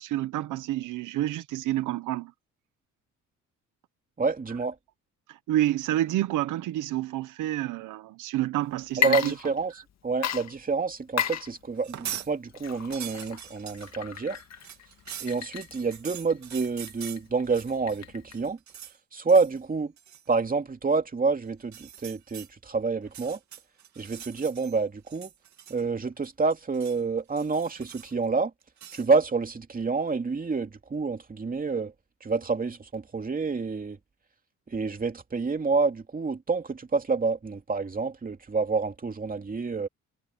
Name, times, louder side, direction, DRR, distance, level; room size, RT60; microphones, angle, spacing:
voice 1, 0.0-2.3 5.3-9.3, right 14 dB, 90° right, 1.1 m, -29 dB
voice 2, 4.2-4.8 9.0-9.7 10.0-14.4 15.2-18.6 19.1-19.9 20.3-23.4 24.0-25.3 25.7-28.5 28.9-31.9 32.2-34.0 34.7-39.9, right 4 dB, 30° right, 2.6 m, -28 dB
Water / Liquid, 8.9-9.9 10.2-18.5, left 8 dB, 60° left, 2.0 m, -34 dB
sound 1, 11.7-12.3 12.6-18.0 18.3-19.0 19.3-19.6 20.0-20.3 21.6-22.5 23.0-24.8 25.1-26.0 26.2-27.0 27.4-28.2 28.8-29.1, right 10 dB, 65° right, 2.9 m, -43 dB
cardioid pair, 90°, 30 cm